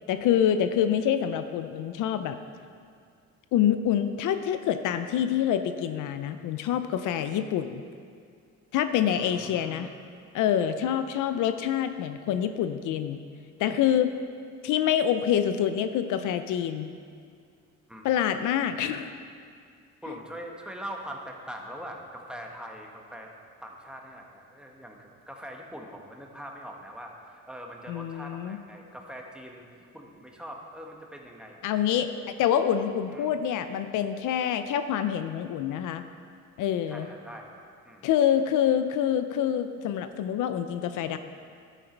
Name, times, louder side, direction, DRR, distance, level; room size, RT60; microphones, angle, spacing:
voice 1, 0.1-2.4 3.5-7.8 8.7-9.9 10.3-13.2 13.6-14.1 14.6-16.9 18.0-19.1 27.9-28.6 31.6-36.0 36.6-37.1 38.0-41.2, left 9 dB, 85° left, 10 dB, 0.6 m, -26 dB
voice 2, 9.2-9.9 10.6-10.7 17.9-18.1 18.8-19.0 20.0-23.3 23.6-29.7 29.9-31.7 32.4-32.5 33.1-33.3 36.9-38.1, equal, 5° right, 0 dB, 1.5 m, -42 dB
11.5 x 9.2 x 4.5 m, 2.2 s
cardioid pair, 90°, 30 cm